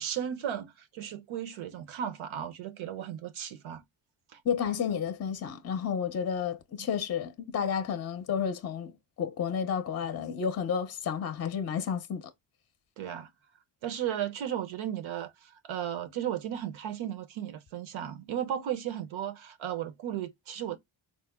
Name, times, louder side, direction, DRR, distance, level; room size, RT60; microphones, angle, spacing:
voice 1, 0.0-3.8 4.3-4.4 13.0-13.3 13.8-20.8, right 10 dB, 80° right, 0.8 m, -35 dB
voice 2, 4.4-12.3, left 7 dB, 35° left, 0.5 m, -31 dB
4.1 x 2.1 x 3.4 m
cardioid pair, 95°, 47 cm